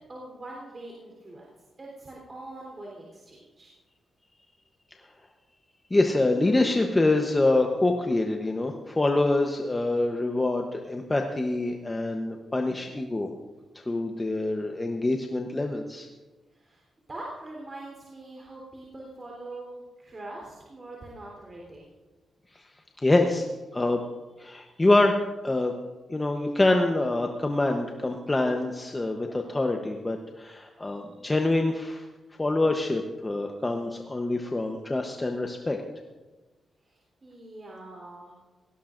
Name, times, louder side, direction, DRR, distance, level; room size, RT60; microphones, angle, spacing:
voice 1, 0.1-1.5 1.8-3.7 16.5-21.9 36.8-38.3, right 2 dB, 30° right, -3 dB, 3.6 m, -43 dB
voice 2, 5.9-13.3 13.9-16.1 23.0-23.5 23.7-24.0 24.4-25.2 25.4-25.7 26.1-32.0 32.4-35.8, left 2 dB, 20° left, 3 dB, 0.9 m, -25 dB
18.0 x 16.0 x 2.6 m, 1.2 s
cardioid pair, 90°, 0 cm